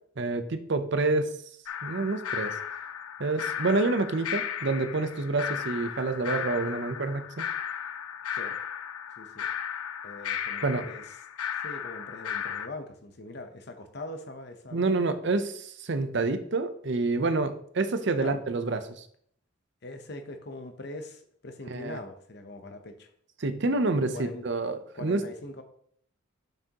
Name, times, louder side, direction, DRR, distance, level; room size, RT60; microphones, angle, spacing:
voice 1, 0.2-1.3 1.8-2.6 3.2-7.4 10.6-10.8 14.7-19.1 21.7-22.0 23.4-25.2, right 3 dB, 55° right, 10 dB, 0.6 m, -28 dB
sound 1, 1.7-12.7, left 8 dB, 80° left, 0.4 m, -35 dB
voice 2, 9.2-9.5 10.0-11.2 11.6-15.1 18.2-18.4 19.8-23.1 23.9-24.5 24.9-25.6, left 2 dB, 50° left, 7 dB, 0.8 m, -42 dB
6.8 x 6.1 x 2.9 m, 0.63 s
head